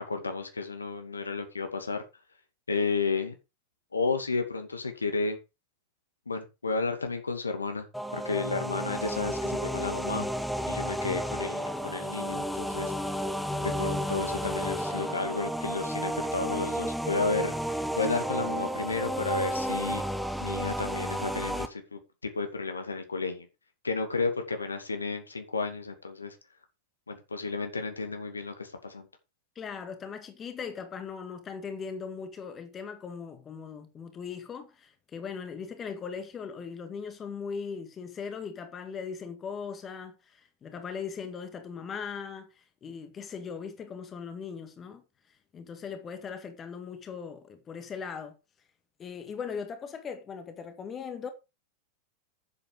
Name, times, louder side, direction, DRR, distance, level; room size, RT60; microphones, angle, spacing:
voice 1, 0.1-2.0 2.7-3.3 3.9-5.4 6.3-7.9 8.1-10.3 10.7-13.1 13.6-17.5 18.0-20.0 20.4-22.0 22.3-23.5 23.8-26.3 27.1-29.1, left 4 dB, 75° left, 2.3 m, -32 dB
sound 1, 7.9-21.7, equal, ahead, 1.2 m, -32 dB
voice 2, 29.6-45.0 45.5-48.4 49.0-51.3, left 6 dB, 25° left, 1.8 m, -39 dB
9.8 x 7.9 x 5.1 m
figure-of-eight pair, 90°, 0 cm